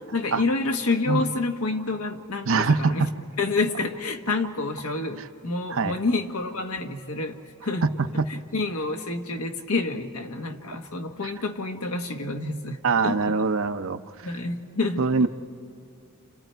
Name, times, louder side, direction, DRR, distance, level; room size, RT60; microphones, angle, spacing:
voice 1, 0.1-3.1 3.4-7.9 8.3-13.2 14.2-15.0, left 3 dB, 80° left, 4 dB, 1.5 m, -28 dB
voice 2, 2.5-3.1 5.7-5.9 11.2-11.3 12.8-14.0 15.0-15.3, right 4 dB, 65° right, 8 dB, 0.7 m, -23 dB
30.0 x 29.5 x 4.6 m, 2.6 s
head